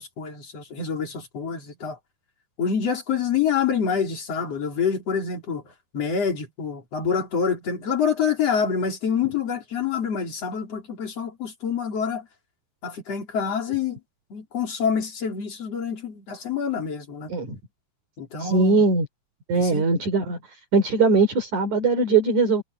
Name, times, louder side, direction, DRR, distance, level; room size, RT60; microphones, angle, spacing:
voice 1, 0.0-2.0 2.6-12.3 12.8-14.0 14.3-17.3 18.2-18.8 19.5-19.8, left 6 dB, 40° left, 4.7 m, -27 dB
voice 2, 18.4-19.1 19.5-20.4 20.7-22.6, right 3 dB, 50° right, 5.4 m, -20 dB
omnidirectional pair, 4.7 m